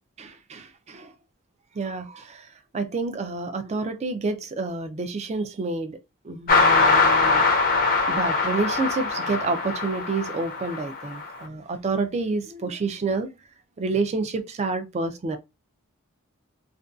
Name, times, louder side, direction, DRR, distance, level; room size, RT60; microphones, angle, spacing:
voice 1, 0.2-1.1 1.7-6.0 6.2-7.5 8.1-13.3 13.8-15.4, right 3 dB, 30° right, 0.3 m, -29 dB
sound 1, 6.5-11.3, left 3 dB, 40° left, 0.4 m, -22 dB
2.5 x 2.2 x 2.3 m
head